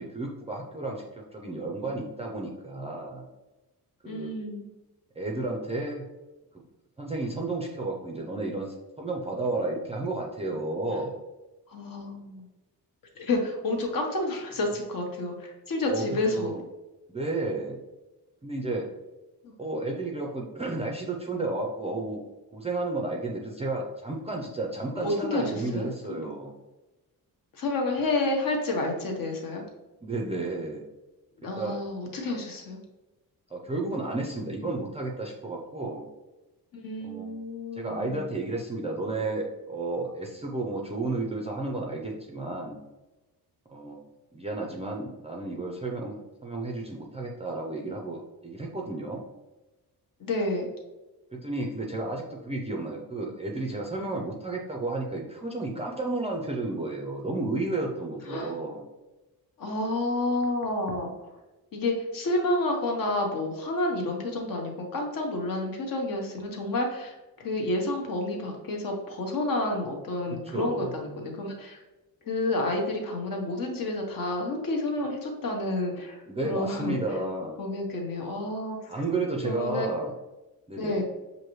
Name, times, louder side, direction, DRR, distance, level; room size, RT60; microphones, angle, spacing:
voice 1, 0.0-3.3 4.0-4.4 5.2-6.0 7.0-11.1 15.8-16.1 16.3-16.6 17.1-17.8 18.4-18.9 19.6-22.2 22.5-26.5 30.0-30.8 31.6-31.8 33.5-36.1 37.0-37.3 37.8-42.8 43.7-44.0 44.3-49.2 51.3-58.8 70.3-70.9 76.3-77.6 78.9-80.1 80.7-81.0, right 2 dB, 15° right, -1 dB, 0.4 m, -32 dB
voice 2, 4.0-4.7 11.7-12.5 13.1-16.5 19.4-19.5 25.0-26.3 27.5-29.6 31.4-32.8 36.7-38.2 50.2-50.7 58.3-58.5 59.6-61.1 61.7-67.2 67.4-71.8 72.2-77.0 77.6-78.9 79.4-79.9 80.8-81.0, left 2 dB, 55° left, 2 dB, 1.0 m, -30 dB
6.2 x 2.6 x 3.0 m, 1.1 s
wide cardioid pair, 165°, 39 cm